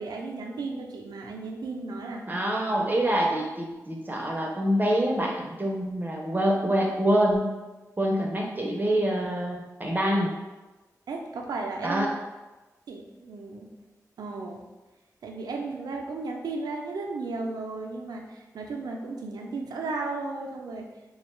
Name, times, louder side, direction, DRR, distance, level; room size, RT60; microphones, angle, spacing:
voice 1, 0.0-2.3 11.1-12.1 12.9-13.7 14.2-14.6 15.2-20.9, right 3 dB, 85° right, 2 dB, 0.3 m, -34 dB
voice 2, 2.3-7.5 8.0-10.3 11.8-12.1, right 1 dB, 30° right, -1 dB, 0.5 m, -26 dB
2.4 x 2.2 x 3.0 m, 1.1 s
cardioid pair, 50°, 7 cm